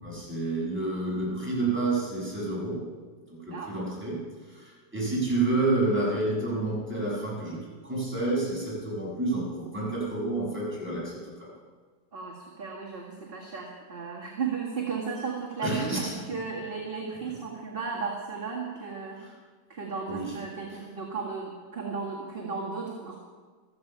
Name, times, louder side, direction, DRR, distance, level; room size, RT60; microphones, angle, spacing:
voice 1, 0.0-2.8 3.4-4.2 4.5-11.5 15.6-16.1 20.1-20.4, right 2 dB, 5° right, -6 dB, 6.5 m, -29 dB
voice 2, 12.1-19.2 19.7-23.2, right 5 dB, 30° right, -3 dB, 2.0 m, -35 dB
15.0 x 14.0 x 5.7 m, 1.5 s
omnidirectional pair, 1.9 m